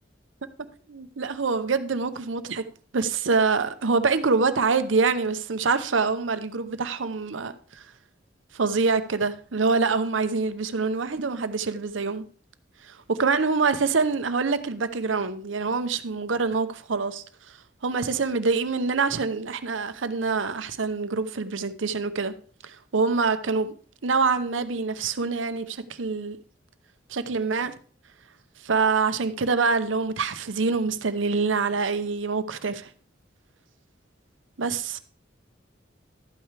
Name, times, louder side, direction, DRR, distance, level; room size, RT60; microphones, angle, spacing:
voice 1, 0.9-2.6 2.9-7.8 8.5-12.2 12.8-17.2 17.8-22.3 22.6-23.7 24.0-26.4 27.1-27.7 28.6-32.9 34.6-35.0, right 4 dB, 90° right, 0.8 m, -25 dB
12.0 x 8.8 x 3.4 m
head